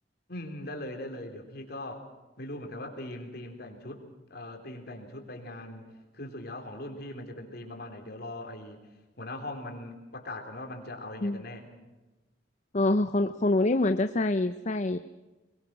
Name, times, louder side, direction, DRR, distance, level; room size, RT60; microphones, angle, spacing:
voice 1, 0.3-2.1 2.4-4.0 4.3-8.8 9.2-11.7, left 1 dB, 60° left, 4 dB, 3.8 m, -40 dB
voice 2, 12.7-15.0, left 2 dB, 40° left, 9 dB, 0.7 m, -25 dB
22.5 x 21.5 x 6.2 m, 1.1 s
head